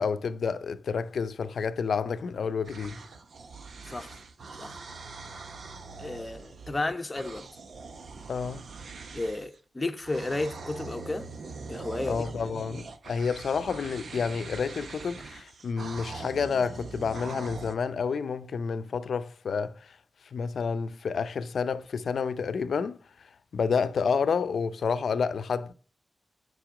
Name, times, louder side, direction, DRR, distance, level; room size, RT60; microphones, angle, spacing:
voice 1, 0.0-3.0 8.3-8.6 12.1-20.0 20.3-23.0 23.5-25.7, left 5 dB, 85° left, 0.6 m, -29 dB
sound 1, 2.6-9.6 10.0-17.8, right 4 dB, 70° right, 1.0 m, -43 dB
voice 2, 3.9-4.2 4.6-4.8 6.0-7.5 9.1-11.3 11.7-12.2, left 2 dB, 25° left, 0.9 m, -33 dB
9.0 x 5.5 x 4.9 m
cardioid pair, 80°, 0 cm